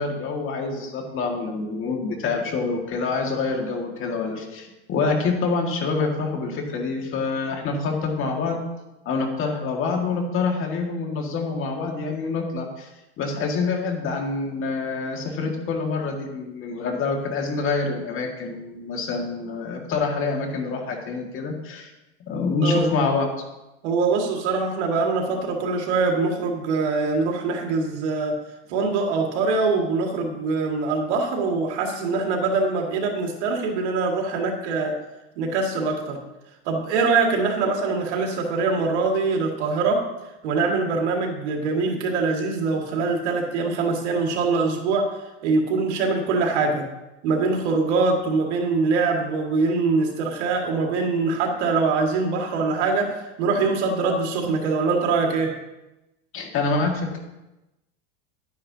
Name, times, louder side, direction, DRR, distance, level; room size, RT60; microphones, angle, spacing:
voice 1, 0.0-8.6 9.1-12.9 13.2-21.9 22.3-23.3 56.3-57.2, left 4 dB, 40° left, 2 dB, 1.9 m, -26 dB
voice 2, 23.8-28.3 28.7-34.9 35.4-36.2 36.7-40.0 40.4-45.0 45.4-46.8 47.2-55.5, right 4 dB, 80° right, 1 dB, 2.1 m, -23 dB
11.0 x 9.5 x 2.8 m, 0.98 s
supercardioid pair, 130°, 34 cm